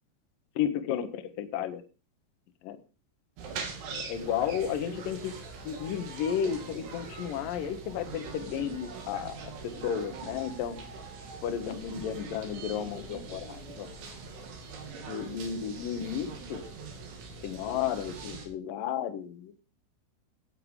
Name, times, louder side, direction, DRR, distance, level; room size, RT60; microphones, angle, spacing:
voice 1, 0.6-1.8 2.6-2.8 3.9-5.3 5.6-9.4 9.6-10.8 11.4-13.9 15.1-16.6 17.4-19.6, left 9 dB, 65° left, 8 dB, 2.2 m, -33 dB
sound 1, 3.4-18.5, right 4 dB, 70° right, 5.2 m, -42 dB
16.5 x 9.1 x 4.9 m, 0.35 s
omnidirectional pair, 5.9 m